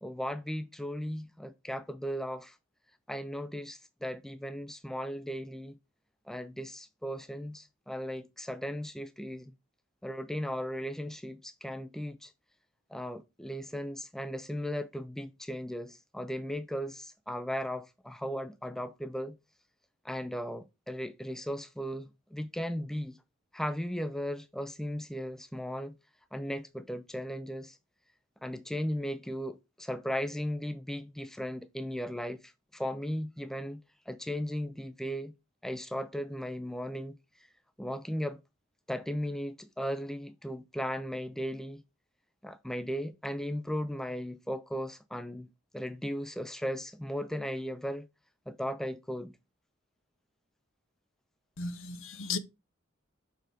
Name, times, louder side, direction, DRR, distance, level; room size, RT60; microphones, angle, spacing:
voice 1, 0.0-2.6 3.1-5.8 6.3-9.5 10.0-12.3 12.9-19.4 20.0-23.2 23.5-26.0 26.3-27.8 28.4-33.8 34.1-35.3 35.6-37.2 37.8-38.4 38.9-41.8 42.4-45.5 45.7-48.1 48.5-49.3, equal, ahead, 0.4 m, -36 dB
voice 2, 51.6-52.4, left 4 dB, 75° left, 0.8 m, -35 dB
6.1 x 4.7 x 5.0 m
head